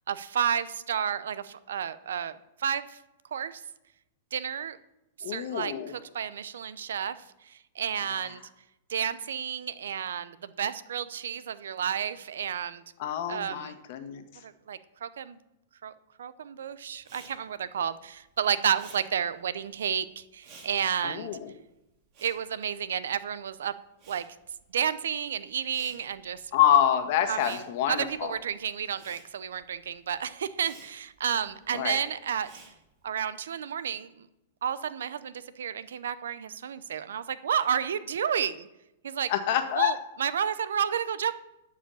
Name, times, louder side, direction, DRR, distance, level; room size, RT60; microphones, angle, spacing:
voice 1, 0.1-3.0 3.3-3.6 4.3-4.8 5.2-8.4 8.9-12.8 13.3-13.8 14.4-15.4 15.8-15.9 16.2-21.3 22.2-23.7 24.1-24.2 24.7-26.4 27.3-27.6 27.9-32.5 33.0-34.3 34.6-38.7 39.0-39.3 39.7-41.3, right 8 dB, 85° right, 15 dB, 0.6 m, -31 dB
voice 2, 5.2-5.9 13.0-14.2 21.0-21.5 26.5-28.3 31.7-32.0 39.3-39.9, left 10 dB, 55° left, 7 dB, 1.4 m, -26 dB
Respiratory sounds, 17.0-23.4 23.7-33.2, right 4 dB, 40° right, 3.3 m, -55 dB
11.5 x 5.0 x 7.0 m, 0.90 s
hypercardioid pair, 135°, 0 cm